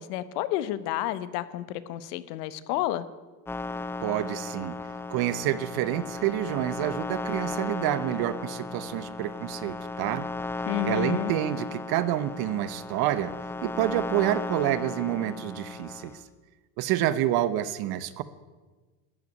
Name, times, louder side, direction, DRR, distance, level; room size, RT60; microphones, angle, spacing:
voice 1, 0.0-3.0 10.7-11.3, left 13 dB, 75° left, 15 dB, 1.1 m, -30 dB
sound 1, 3.4-16.2, left 3 dB, 5° left, 0.3 m, -35 dB
voice 2, 4.0-4.7 5.1-10.3 10.8-13.3 13.6-16.1 16.8-18.2, right 13 dB, 50° right, 15 dB, 0.9 m, -28 dB
13.0 x 8.1 x 9.4 m, 1.3 s
supercardioid pair, 130°, 48 cm